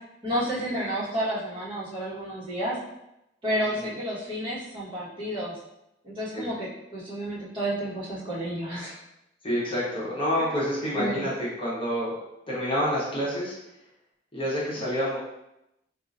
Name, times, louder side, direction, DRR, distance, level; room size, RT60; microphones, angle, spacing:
voice 1, 0.2-2.8 3.4-5.5 6.0-8.9 10.4-10.5 10.9-11.2, equal, 25° right, -10 dB, 1.4 m, -31 dB
voice 2, 9.4-12.1 12.5-13.5 14.3-15.2, equal, 30° left, -8 dB, 1.0 m, -28 dB
4.6 x 2.5 x 2.6 m, 0.89 s
head